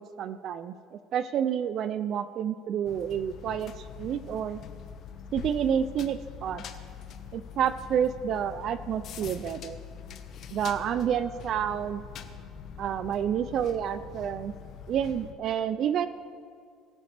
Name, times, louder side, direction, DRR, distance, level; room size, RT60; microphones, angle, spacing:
voice 1, 0.0-3.7 4.0-4.6 5.3-6.6 7.3-9.8 10.5-12.0 12.8-14.5 14.9-16.1, right 9 dB, 40° right, 13 dB, 0.3 m, -29 dB
sound 1, 2.8-15.3, left 7 dB, 45° left, 0.8 m, -43 dB
21.0 x 9.2 x 3.4 m, 2.2 s
cardioid pair, 160°, 0 cm